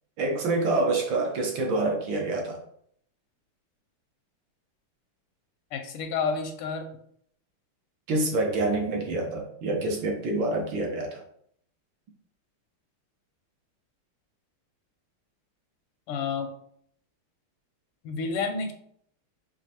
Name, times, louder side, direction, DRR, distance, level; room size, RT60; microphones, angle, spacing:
voice 1, 0.2-2.6 8.1-11.2, right 2 dB, 70° right, 1 dB, 1.3 m, -27 dB
voice 2, 5.7-6.9 16.1-16.5 18.0-18.7, left 5 dB, 85° left, 5 dB, 1.5 m, -30 dB
5.2 x 2.5 x 2.9 m, 0.66 s
omnidirectional pair, 2.4 m